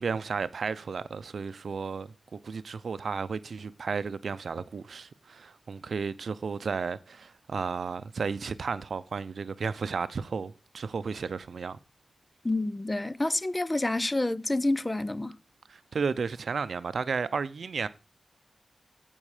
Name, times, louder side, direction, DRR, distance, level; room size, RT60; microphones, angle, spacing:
voice 1, 0.0-11.8 15.7-17.9, right 5 dB, 75° right, 0.6 m, -33 dB
voice 2, 12.4-15.3, left 2 dB, 20° left, 0.5 m, -28 dB
14.5 x 5.4 x 4.9 m
wide cardioid pair, 100°, 0 cm